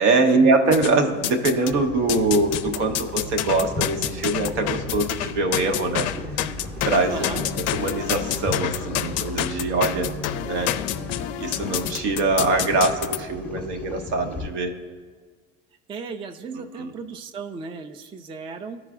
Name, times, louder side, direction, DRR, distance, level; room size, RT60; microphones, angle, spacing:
voice 1, 0.0-6.1 6.3-6.5 6.8-7.3 7.6-10.1 10.4-10.7 11.4-14.7 16.5-16.9, right 3 dB, 70° right, 4 dB, 1.0 m, -23 dB
sound 1, 0.7-1.7 2.1-13.2, left 12 dB, 45° left, 0.5 m, -28 dB
sound 2, 1.7-14.5, left 3 dB, 5° left, 0.8 m, -37 dB
sound 3, 3.2-11.2, right 1 dB, 35° right, 0.9 m, -41 dB
voice 2, 7.1-7.4 15.9-18.8, right 4 dB, 15° right, 8 dB, 0.4 m, -36 dB
14.5 x 4.8 x 2.4 m, 1.5 s
hypercardioid pair, 70°, 36 cm